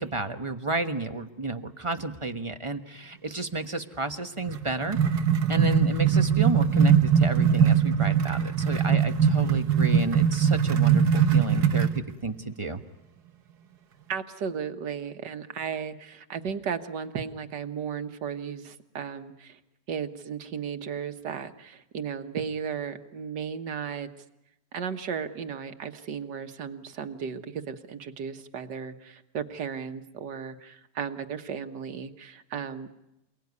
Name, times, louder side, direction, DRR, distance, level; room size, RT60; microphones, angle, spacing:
voice 1, 0.0-5.0 5.5-12.8, right 3 dB, 20° right, 7 dB, 1.1 m, -32 dB
sound 1, 4.5-12.0, right 7 dB, 70° right, 1.7 m, -21 dB
voice 2, 14.1-19.6 19.9-24.1 24.7-33.0, right 7 dB, 90° right, 8 dB, 1.9 m, -35 dB
28.5 x 18.5 x 9.6 m, 0.88 s
omnidirectional pair, 1.8 m